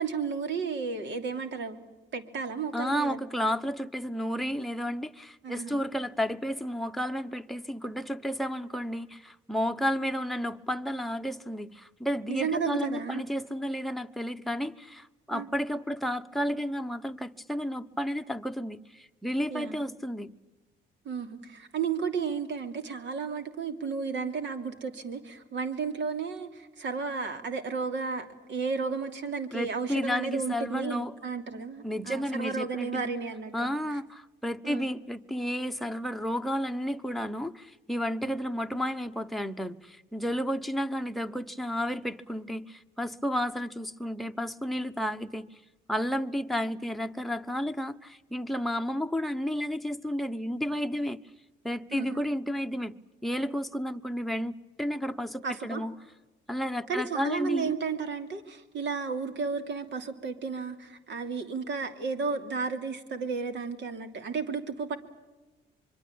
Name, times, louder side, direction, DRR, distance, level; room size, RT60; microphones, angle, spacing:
voice 1, 0.0-1.8 2.1-3.2 5.4-5.8 12.3-13.2 15.3-15.5 19.5-19.8 21.0-34.0 34.6-34.9 51.9-52.2 55.4-55.8 56.9-65.0, right 5 dB, 65° right, 2.9 m, -33 dB
voice 2, 2.7-20.3 29.5-31.1 31.8-33.1 33.5-45.5 45.9-51.2 51.6-52.9 53.2-55.9 56.5-57.7, equal, ahead, 1.0 m, -32 dB
25.0 x 23.5 x 8.7 m
cardioid pair, 90°, 20 cm